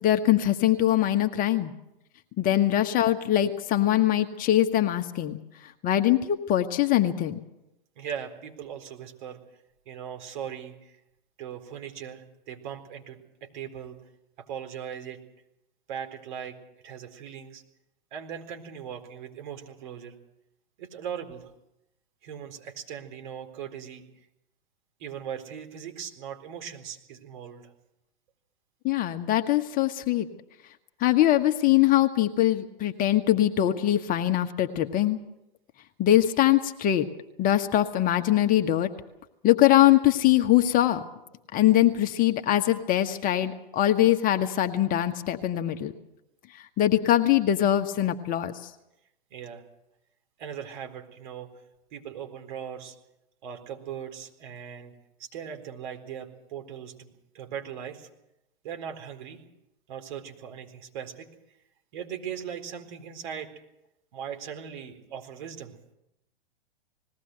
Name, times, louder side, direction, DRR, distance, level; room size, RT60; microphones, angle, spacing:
voice 1, 0.0-1.7 2.4-5.4 5.8-7.4 28.8-30.3 31.0-35.2 36.0-37.1 37.4-38.9 39.4-41.0 41.5-45.9 46.8-48.6, left 13 dB, 30° left, 7 dB, 1.3 m, -22 dB
voice 2, 8.0-9.4 9.9-10.9 11.4-14.0 14.4-15.2 15.9-16.6 16.8-17.6 18.1-20.2 20.8-21.5 22.2-24.0 25.0-27.7 49.3-49.6 50.4-51.5 51.9-52.9 53.4-54.9 55.2-58.1 58.6-59.4 59.9-61.3 61.9-63.5 64.1-65.8, right 8 dB, 55° right, 3 dB, 4.1 m, -39 dB
20.5 x 17.5 x 7.9 m, 0.86 s
figure-of-eight pair, 105°, 29 cm